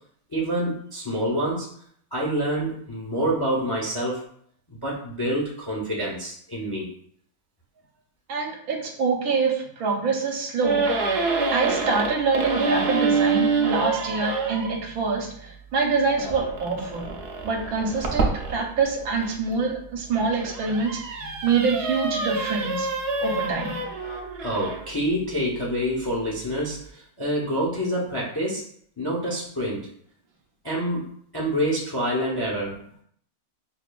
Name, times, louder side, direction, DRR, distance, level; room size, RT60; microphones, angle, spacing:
voice 1, 0.3-1.7 2.1-4.2 4.7-6.9 24.4-28.6 29.0-29.9 30.6-31.1 31.3-33.0, equal, 35° left, -4 dB, 0.3 m, -27 dB
voice 2, 8.3-10.9 11.5-17.1 17.4-22.9 23.2-23.8, right 4 dB, 80° right, 1 dB, 1.2 m, -25 dB
sound 1, 10.6-14.7 16.2-19.3 20.0-24.9, right 4 dB, 60° right, 0.7 m, -27 dB
5.5 x 2.5 x 2.2 m, 0.63 s
omnidirectional pair, 1.6 m